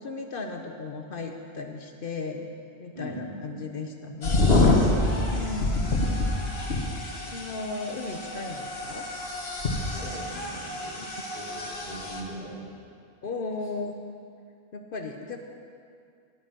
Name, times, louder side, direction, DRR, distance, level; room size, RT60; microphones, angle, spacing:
voice 1, 0.0-2.5 2.8-4.5 5.3-6.3 7.3-9.1 13.2-13.9 14.7-15.4, left 3 dB, 60° left, 4 dB, 1.0 m, -35 dB
voice 2, 3.0-3.3 9.8-11.0 11.3-12.7, right 1 dB, 55° right, -8 dB, 4.1 m, -40 dB
sound 1, 4.2-12.2, left 2 dB, 80° left, 1.7 m, -27 dB
12.5 x 9.6 x 6.2 m, 2.4 s
omnidirectional pair, 1.0 m